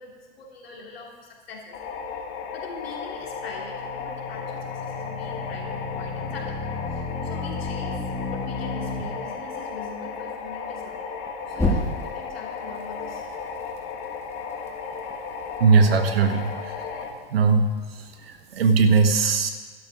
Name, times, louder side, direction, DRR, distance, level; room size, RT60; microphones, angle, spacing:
voice 1, 0.0-1.8 2.1-6.6 6.9-11.0 11.5-13.2, left 3 dB, 80° left, -1 dB, 3.3 m, -42 dB
sound 1, 1.7-17.1, left 5 dB, 40° left, 1.7 m, -35 dB
sound 2, 3.2-9.0 11.5-12.3, left 2 dB, 10° left, 2.3 m, -31 dB
voice 2, 15.6-16.7 17.3-17.8 18.5-19.5, right 4 dB, 80° right, 7 dB, 1.4 m, -19 dB
12.5 x 12.0 x 4.9 m, 1.4 s
hypercardioid pair, 100°, 30 cm